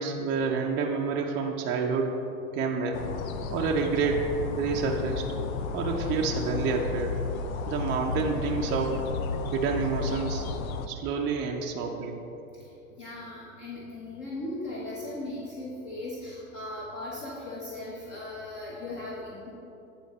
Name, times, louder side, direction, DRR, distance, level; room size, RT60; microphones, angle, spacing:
voice 1, 0.0-2.2 2.5-3.1 3.5-4.3 4.6-5.3 5.7-7.2 7.7-9.0 9.5-10.5 10.9-12.1, right 5 dB, 25° right, 0 dB, 0.5 m, -28 dB
sound 1, 2.9-10.9, left 4 dB, 70° left, 0.6 m, -33 dB
voice 2, 12.6-19.5, left 2 dB, 40° left, -6 dB, 1.3 m, -38 dB
9.5 x 3.8 x 4.1 m, 2.9 s
hypercardioid pair, 100°, 44 cm